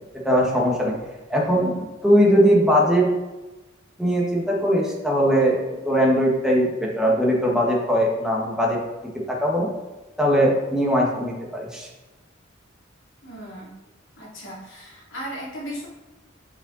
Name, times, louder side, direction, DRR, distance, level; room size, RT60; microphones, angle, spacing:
voice 1, 0.2-1.0 1.3-3.1 4.0-8.8 9.3-9.7 10.2-11.9, equal, 5° right, -3 dB, 1.4 m, -20 dB
voice 2, 13.2-13.7 14.2-15.9, equal, 70° left, -5 dB, 2.7 m, -36 dB
7.4 x 5.5 x 3.9 m, 1.1 s
head